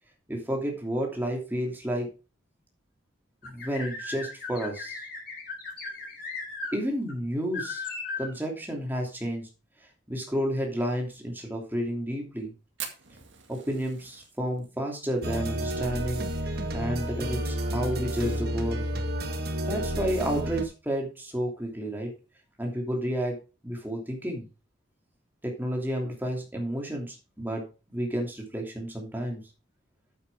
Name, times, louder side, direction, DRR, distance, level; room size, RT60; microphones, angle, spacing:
voice 1, 0.3-2.1 3.4-5.1 6.7-7.8 8.2-9.5 10.1-12.5 13.5-16.3 16.7-18.8 19.7-22.1 22.6-23.4 23.6-24.4 25.4-27.6 27.9-29.4, equal, 10° right, 0 dB, 2.8 m, -31 dB
sound 1, 3.4-6.7 7.1-7.2 7.5-8.3, left 4 dB, 50° left, 4.3 m, -37 dB
Fire, 12.8-17.3 17.5-17.6 17.9-18.0 18.4-18.8 19.3-19.4 20.5-20.6, right 8 dB, 70° right, 2.0 m, -44 dB
sound 2, 15.2-20.6, right 1 dB, 50° right, 1.6 m, -31 dB
9.2 x 8.3 x 3.6 m, 0.31 s
head